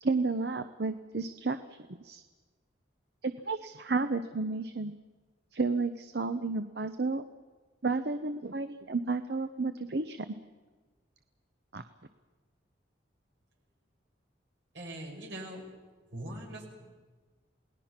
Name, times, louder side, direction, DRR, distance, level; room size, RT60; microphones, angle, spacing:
voice 1, 0.0-2.2 3.2-5.0 5.5-7.3 7.8-10.3 11.7-11.8, right 3 dB, 55° right, 10 dB, 0.8 m, -32 dB
voice 2, 14.7-15.7 16.1-16.9, right 1 dB, 70° right, 1 dB, 5.7 m, -42 dB
28.5 x 19.0 x 6.0 m, 1.3 s
head